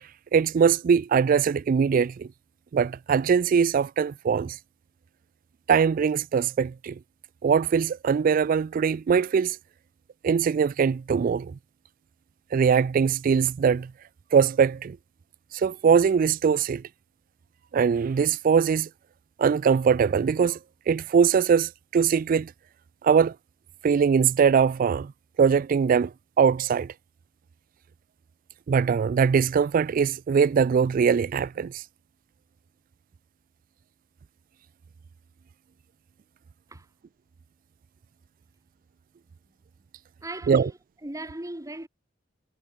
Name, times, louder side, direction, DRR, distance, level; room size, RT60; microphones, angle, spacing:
voice 1, 0.3-2.3 2.7-4.6 5.7-7.0 7.4-9.6 10.2-11.6 12.5-13.9 14.3-15.0 15.5-16.8 17.7-18.9 19.4-20.6 20.9-22.5 23.0-23.3 23.8-25.1 25.4-26.9 28.7-31.8 40.5-40.7, right 6 dB, 45° right, 0.3 m, -22 dB
voice 2, 40.2-41.9, right 1 dB, 20° right, 1.6 m, -38 dB
head